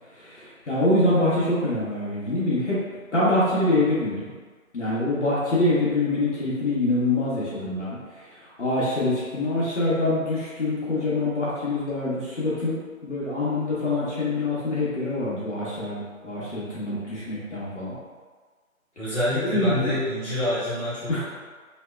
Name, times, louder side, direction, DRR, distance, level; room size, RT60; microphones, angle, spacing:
voice 1, 0.1-2.8 3.1-4.3 4.7-17.9 19.4-20.0 21.1-21.2, left 2 dB, 55° left, -9 dB, 0.8 m, -25 dB
voice 2, 19.0-21.2, left 1 dB, 5° left, -22 dB, 1.2 m, -27 dB
2.7 x 2.1 x 2.2 m, 1.5 s
figure-of-eight pair, 175°, 43 cm